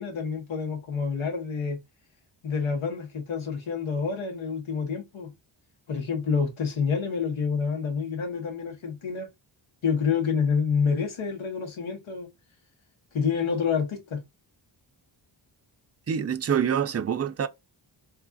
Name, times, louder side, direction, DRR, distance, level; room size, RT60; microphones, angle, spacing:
voice 1, 0.0-1.8 2.4-5.3 5.9-9.3 9.8-12.3 13.1-14.2, left 6 dB, 85° left, 1.3 m, -28 dB
voice 2, 16.1-17.5, right 8 dB, 35° right, 0.4 m, -26 dB
3.1 x 2.4 x 3.8 m
wide cardioid pair, 130°, 47 cm